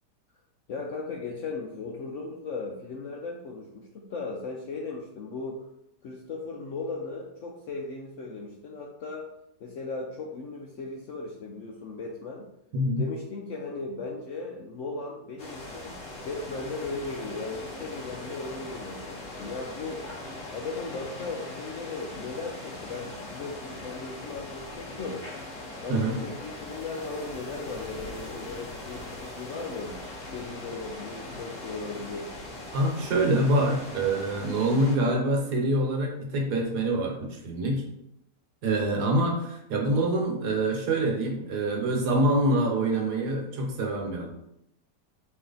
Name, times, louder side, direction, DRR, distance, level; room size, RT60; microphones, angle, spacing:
voice 1, 0.7-5.7 6.0-9.3 9.6-12.5 13.0-16.0 16.2-20.1 20.5-25.3 25.8-32.3, left 3 dB, 75° left, 0 dB, 0.7 m, -37 dB
voice 2, 12.7-13.1 25.9-26.2 32.7-37.8 38.6-44.3, right 1 dB, 70° right, 1 dB, 1.4 m, -25 dB
sound 1, 15.4-35.0, left 2 dB, 45° left, 0.9 m, -40 dB
4.3 x 3.1 x 3.9 m, 0.80 s
omnidirectional pair, 1.8 m